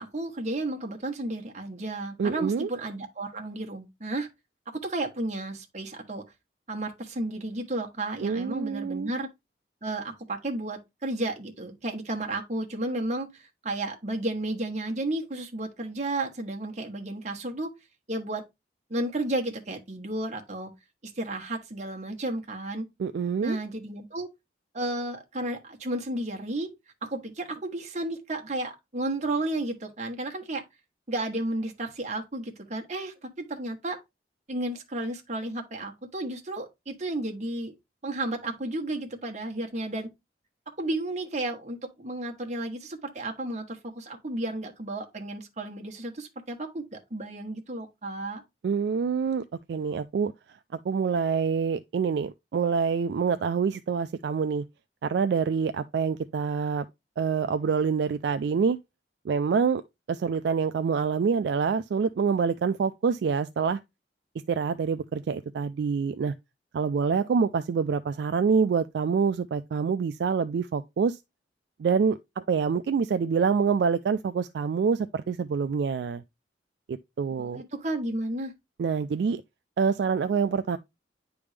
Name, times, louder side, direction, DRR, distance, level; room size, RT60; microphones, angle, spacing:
voice 1, 0.0-4.3 4.7-6.2 6.7-9.3 9.8-17.7 18.1-18.4 18.9-20.7 21.2-22.9 23.4-24.3 24.7-26.7 27.1-30.6 31.1-34.0 34.5-37.7 38.0-40.1 40.8-48.4 77.3-78.5, right 2 dB, 40° right, 1.2 m, -32 dB
voice 2, 2.2-2.7 8.2-9.1 23.0-23.6 48.6-50.3 50.7-54.6 55.0-56.8 57.2-58.8 59.2-59.8 60.1-63.8 64.5-66.3 66.7-71.2 71.8-76.2 76.9-77.6 78.8-79.4 79.8-80.8, right 6 dB, 65° right, 0.3 m, -26 dB
9.6 x 3.5 x 3.2 m
head